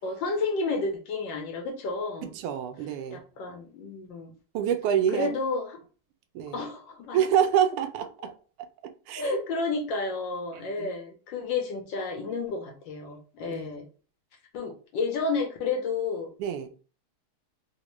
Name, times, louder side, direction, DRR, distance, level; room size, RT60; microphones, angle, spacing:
voice 1, 0.0-2.3 3.1-4.3 5.1-5.8 6.5-7.2 8.2-8.3 9.1-13.9 14.5-16.3, left 3 dB, 70° left, 1.3 m, -31 dB
voice 2, 2.4-3.2 4.5-5.3 6.3-6.6 7.1-8.3 9.1-9.2 10.5-10.9 13.5-13.8 16.4-16.7, right 9 dB, 90° right, 1.5 m, -26 dB
4.0 x 2.1 x 3.0 m
omnidirectional pair, 2.4 m